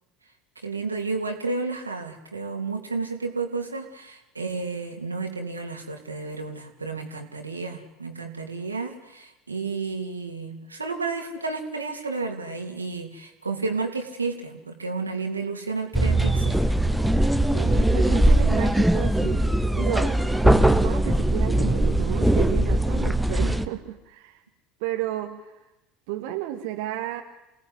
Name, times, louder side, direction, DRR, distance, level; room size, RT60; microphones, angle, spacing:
voice 1, 0.6-16.7, right 4 dB, 85° right, 4 dB, 3.1 m, -31 dB
sound 1, 15.9-23.7, right 1 dB, 5° right, 1.6 m, -21 dB
voice 2, 17.5-24.4 24.8-25.5 26.1-27.2, right 13 dB, 60° right, 4 dB, 1.8 m, -32 dB
28.5 x 18.0 x 10.0 m, 0.98 s
figure-of-eight pair, 70°, 0 cm